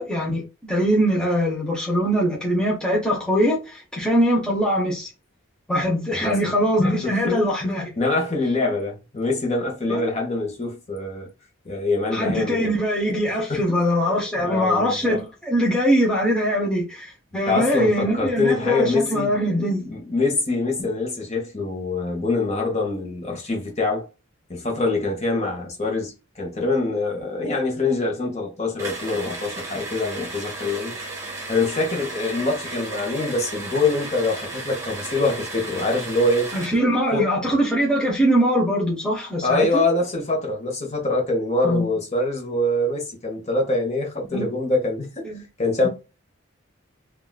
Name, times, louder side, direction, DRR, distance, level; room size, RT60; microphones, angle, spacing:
voice 1, 0.0-5.1 5.7-7.9 9.9-10.1 12.1-19.8 36.5-39.8 41.6-41.8 44.3-44.5 45.2-45.4 45.8-45.9, equal, 5° left, 0.6 m, -22 dB
voice 2, 7.0-7.4 8.0-11.3 11.6-12.7 13.3-13.8 14.4-15.2 17.5-19.4 19.8-24.1 24.5-30.9 31.5-36.5 37.1-37.3 39.4-45.3 45.6-45.9, left 2 dB, 35° left, 0.9 m, -24 dB
sound 1, 28.8-36.8, right 2 dB, 15° right, 1.2 m, -34 dB
3.6 x 2.3 x 2.2 m
head